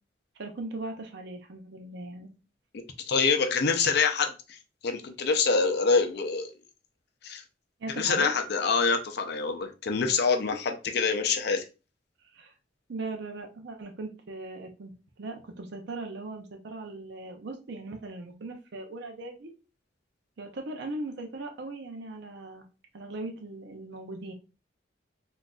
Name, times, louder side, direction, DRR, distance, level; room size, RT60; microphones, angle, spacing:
voice 1, 0.4-2.3 7.8-8.3 12.3-12.5 12.9-14.9 15.2-19.5 20.4-22.6 22.9-24.3, right 2 dB, 65° right, 3 dB, 0.5 m, -39 dB
voice 2, 3.1-4.6 4.8-6.5 7.2-7.4 8.0-11.6, left 5 dB, 60° left, 6 dB, 0.5 m, -25 dB
3.7 x 2.5 x 2.3 m, 0.31 s
head